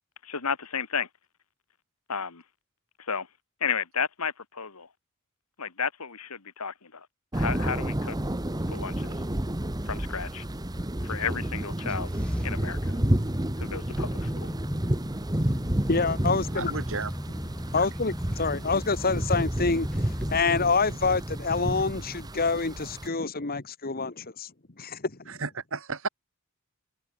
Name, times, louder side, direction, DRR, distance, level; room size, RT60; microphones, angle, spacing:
voice 1, 0.2-1.1 2.1-2.4 3.1-3.3 3.6-4.9 5.6-7.1 7.3-8.2 8.7-9.1 9.9-10.4 11.0-12.1 12.4-13.0 13.6-14.5, left 6 dB, 80° left, 2.0 m, -32 dB
sound 1, 7.3-23.1, right 1 dB, 15° right, 1.4 m, -30 dB
sound 2, 11.9-20.4, equal, 5° left, 0.9 m, -38 dB
voice 2, 15.9-16.7 17.7-24.5 24.8-25.3, left 4 dB, 45° left, 1.5 m, -27 dB
voice 3, 16.5-17.1 17.7-17.9 25.3-26.1, right 4 dB, 65° right, 2.6 m, -33 dB
head